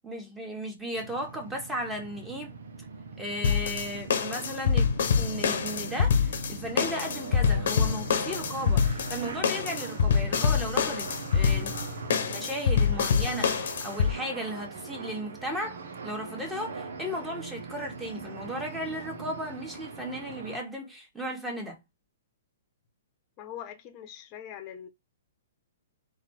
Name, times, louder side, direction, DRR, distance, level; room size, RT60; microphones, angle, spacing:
voice 1, 0.0-2.6 3.2-4.8 5.2-11.7 12.3-21.8, equal, 5° right, 1.6 m, -35 dB
sound 1, 0.9-20.6, right 4 dB, 75° right, 1.0 m, -41 dB
sound 2, 3.4-14.1, left 6 dB, 65° left, 1.0 m, -26 dB
voice 2, 23.4-24.9, left 10 dB, 35° left, 1.0 m, -42 dB
4.1 x 2.8 x 4.3 m
hypercardioid pair, 135°, 0 cm